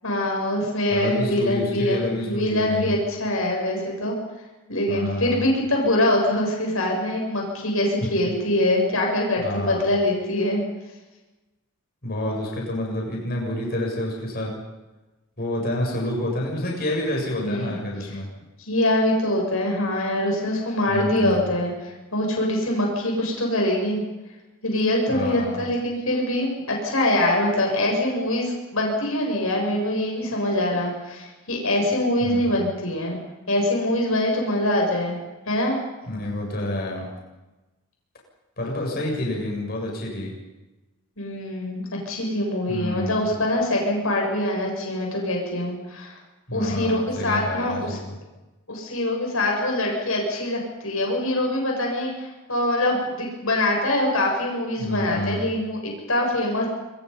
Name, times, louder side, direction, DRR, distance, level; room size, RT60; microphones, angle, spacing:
voice 1, 0.0-4.2 4.7-10.6 17.4-17.8 18.7-24.0 24.6-33.2 33.5-35.2 35.5-35.8 41.2-46.2 46.5-48.0 48.7-56.7, left 1 dB, 70° left, 0 dB, 7.7 m, -24 dB
voice 2, 0.9-3.0 4.9-5.4 9.4-9.9 12.0-14.5 15.4-18.3 20.9-21.4 25.1-25.6 32.2-32.6 36.1-37.1 38.6-40.3 42.7-43.3 46.5-48.2 54.8-55.4, left 1 dB, 45° left, -1 dB, 7.6 m, -28 dB
27.5 x 25.0 x 5.7 m, 1.1 s
head